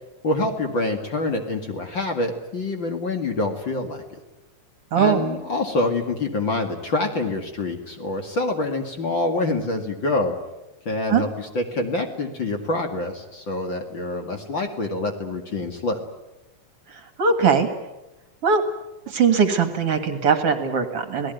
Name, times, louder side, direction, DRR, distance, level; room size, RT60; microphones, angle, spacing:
voice 1, 0.2-4.0 5.0-10.3 10.9-16.0, left 2 dB, 40° left, 5 dB, 2.5 m, -26 dB
voice 2, 4.9-5.2 11.1-11.2 16.9-17.7 18.4-18.6 19.1-21.3, right 6 dB, 50° right, 8 dB, 2.5 m, -20 dB
28.0 x 18.5 x 9.2 m, 1.0 s
omnidirectional pair, 3.6 m